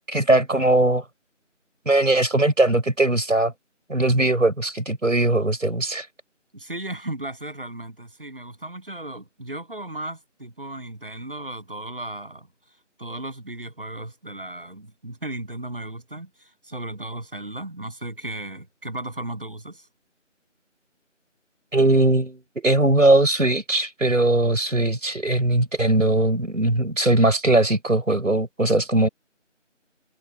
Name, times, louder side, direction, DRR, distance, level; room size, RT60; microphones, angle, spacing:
voice 1, 0.1-1.0 1.9-3.5 3.9-6.1 21.7-29.1, right 2 dB, 85° right, 6.4 m, -20 dB
voice 2, 6.5-12.5 13.0-19.9, right 1 dB, 45° right, 8.0 m, -35 dB
figure-of-eight pair, 180°, 38 cm